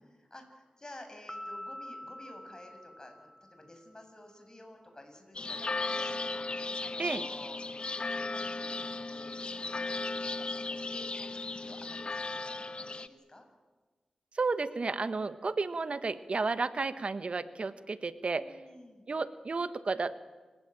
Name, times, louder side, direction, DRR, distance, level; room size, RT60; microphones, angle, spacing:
voice 1, 0.1-6.2 6.8-7.6 8.1-8.7 9.1-13.4 18.3-19.1, left 1 dB, 30° left, 5 dB, 7.1 m, -52 dB
Piano, 1.3-3.9, left 1 dB, ahead, 1.4 m, -45 dB
sound 1, 5.3-13.1, left 3 dB, 50° left, 1.1 m, -36 dB
voice 2, 14.3-18.6 19.1-20.1, right 4 dB, 60° right, 12 dB, 1.3 m, -32 dB
27.5 x 16.5 x 9.2 m, 1.3 s
cardioid pair, 40°, 2 cm